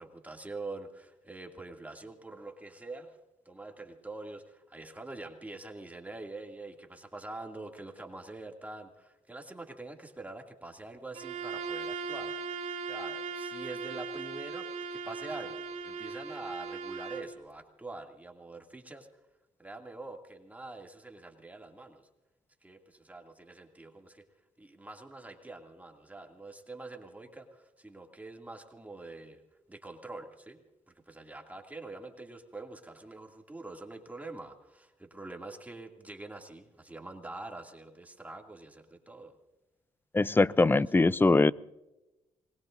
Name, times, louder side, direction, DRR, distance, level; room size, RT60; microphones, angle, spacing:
voice 1, 0.0-3.2 3.5-12.3 12.8-14.7 14.9-19.1 19.6-22.1 22.6-24.2 24.6-29.4 29.7-30.6 31.1-39.4 40.3-40.4 40.7-41.2, right 2 dB, 10° right, 2 dB, 2.4 m, -45 dB
Bowed string instrument, 11.1-17.3, right 5 dB, 85° right, 2.0 m, -38 dB
voice 2, 40.1-41.5, left 3 dB, 15° left, 18 dB, 0.5 m, -22 dB
27.5 x 20.5 x 2.6 m, 0.98 s
cardioid pair, 75°, 12 cm